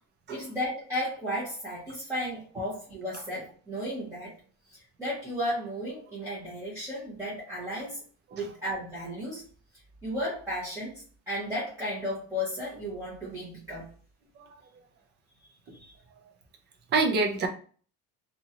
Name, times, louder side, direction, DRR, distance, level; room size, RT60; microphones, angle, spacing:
voice 1, 0.3-4.3 4.7-8.0 8.3-9.4 10.0-13.9 15.7-15.9, equal, 10° right, -10 dB, 1.0 m, -34 dB
voice 2, 16.9-17.5, right 3 dB, 30° right, 4 dB, 0.5 m, -26 dB
2.8 x 2.5 x 2.8 m, 0.41 s
cardioid pair, 180°, 34 cm